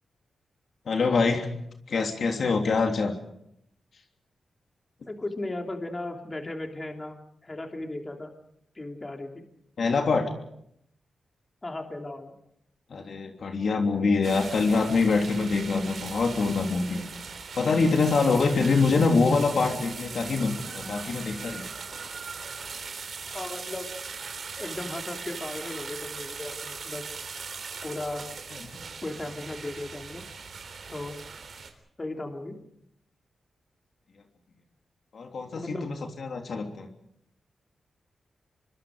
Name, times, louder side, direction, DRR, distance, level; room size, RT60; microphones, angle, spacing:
voice 1, 0.9-1.5 1.9-3.1 9.8-10.3 12.9-17.1 17.5-21.6 35.1-36.9, left 4 dB, 65° left, 3 dB, 3.2 m, -24 dB
voice 2, 5.1-8.3 8.7-9.4 11.6-12.4 23.1-23.9 24.6-27.1 27.8-28.2 29.0-30.3 30.9-31.1 32.0-32.6 35.5-35.9, left 2 dB, 25° left, 3 dB, 3.1 m, -36 dB
sound 1, 14.2-31.7, right 5 dB, 60° right, 3.7 m, -39 dB
26.5 x 24.0 x 5.1 m, 0.74 s
wide cardioid pair, 95°, 0 cm